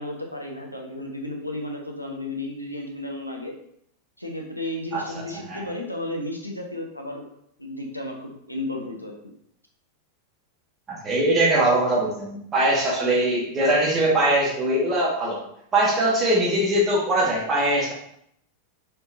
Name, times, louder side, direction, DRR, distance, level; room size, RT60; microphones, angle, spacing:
voice 1, 0.0-3.5 4.2-7.3 7.6-9.3, left 1 dB, 90° left, 1 dB, 0.7 m, -33 dB
voice 2, 5.3-5.6 10.9-15.4 15.7-17.9, right 1 dB, 25° right, -4 dB, 1.4 m, -21 dB
4.3 x 3.4 x 2.7 m, 0.71 s
figure-of-eight pair, 90°, 0 cm